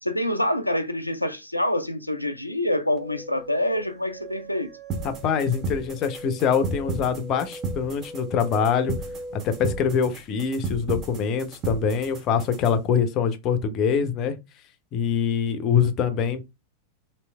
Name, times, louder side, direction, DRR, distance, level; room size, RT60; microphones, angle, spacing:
voice 1, 0.0-4.7, left 1 dB, 90° left, 0.3 m, -26 dB
sound 1, 3.0-10.1, right 1 dB, 10° right, 1.0 m, -41 dB
sound 2, 4.9-12.9, right 3 dB, 30° right, 0.8 m, -34 dB
voice 2, 5.0-8.9 9.3-14.4 14.9-16.5, left 7 dB, 35° left, 0.5 m, -24 dB
3.1 x 2.8 x 2.2 m
figure-of-eight pair, 90°, 0 cm